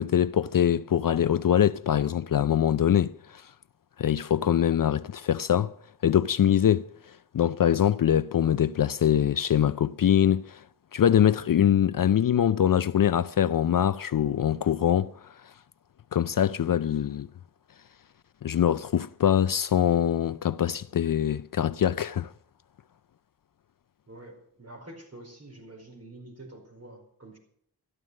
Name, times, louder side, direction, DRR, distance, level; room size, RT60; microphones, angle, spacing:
voice 1, 0.0-3.1 4.0-5.7 6.0-6.9 7.3-10.6 10.9-15.1 16.1-17.3 18.4-22.3, left 9 dB, 55° left, 0.5 m, -23 dB
voice 2, 24.1-27.4, right 1 dB, 35° right, 4.8 m, -47 dB
13.5 x 11.0 x 6.4 m
wide cardioid pair, 105°, 41 cm